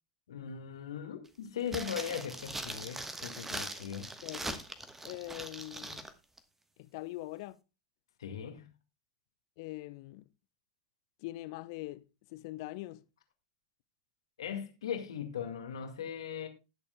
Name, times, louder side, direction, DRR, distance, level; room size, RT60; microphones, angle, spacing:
voice 1, 0.3-4.1 8.2-8.7 14.4-16.5, left 8 dB, 70° left, 1.9 m, -39 dB
sound 1, 1.7-6.1 6.4-6.5, right 2 dB, 10° right, 1.2 m, -41 dB
voice 2, 4.2-4.6 5.0-6.1 6.8-7.6 9.6-10.2 11.2-13.0, left 18 dB, 55° left, 0.7 m, -43 dB
19.5 x 6.9 x 2.3 m
figure-of-eight pair, 85°, 3 cm